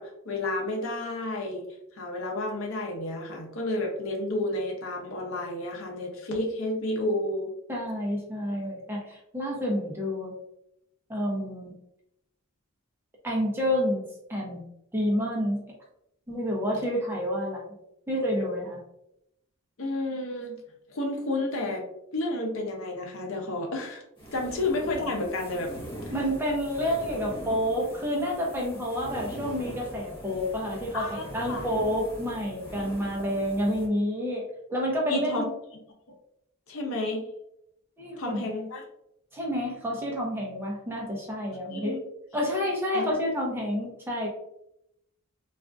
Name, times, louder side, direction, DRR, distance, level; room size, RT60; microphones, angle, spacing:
voice 1, 0.0-1.6 1.9-7.5 19.8-20.6 20.9-21.8 22.1-24.0 24.3-25.7 30.9-31.6 35.1-35.4 36.7-37.2 38.2-38.8 41.7-42.0 42.9-43.0, left 2 dB, 70° left, 1 dB, 0.7 m, -31 dB
voice 2, 7.7-10.4 11.1-11.8 13.2-14.0 14.3-14.6 14.9-15.6 16.3-17.7 18.1-18.8 26.1-34.4 34.7-35.5 38.0-38.5 39.3-41.9 42.3-44.3, equal, 10° right, -3 dB, 0.6 m, -29 dB
sound 1, 24.2-33.9, right 1 dB, 20° left, 0.8 m, -42 dB
3.4 x 2.4 x 2.4 m, 0.80 s
head